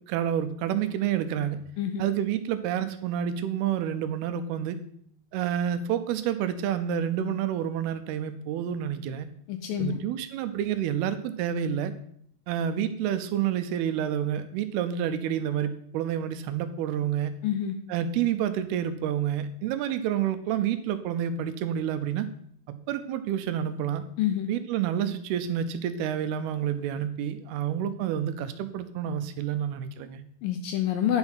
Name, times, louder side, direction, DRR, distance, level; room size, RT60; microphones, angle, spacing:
voice 1, 0.1-1.6 2.0-4.8 5.3-9.3 9.8-11.9 12.5-17.4 17.9-22.3 22.7-24.0 24.5-30.2, right 9 dB, 80° right, 11 dB, 2.6 m, -29 dB
voice 2, 9.5-10.0 17.4-17.7 24.2-24.5 30.4-31.2, left 10 dB, 80° left, 6 dB, 2.1 m, -27 dB
9.8 x 6.1 x 5.7 m, 0.66 s
omnidirectional pair, 4.6 m